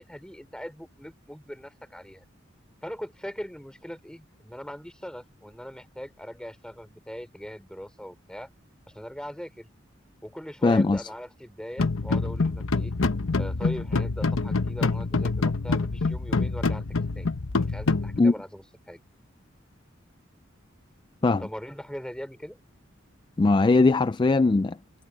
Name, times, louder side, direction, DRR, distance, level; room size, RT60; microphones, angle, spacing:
voice 1, 0.0-2.2 2.8-8.5 8.9-9.7 10.2-12.9 13.4-16.9 17.1-17.3 17.6-19.0 21.3-22.6, equal, 5° left, 4.5 m, -40 dB
voice 2, 10.6-11.1 18.2-18.3 21.2-21.5 23.4-24.8, left 3 dB, 25° left, 0.3 m, -20 dB
sound 1, 11.8-18.2, left 3 dB, 90° left, 0.9 m, -26 dB
head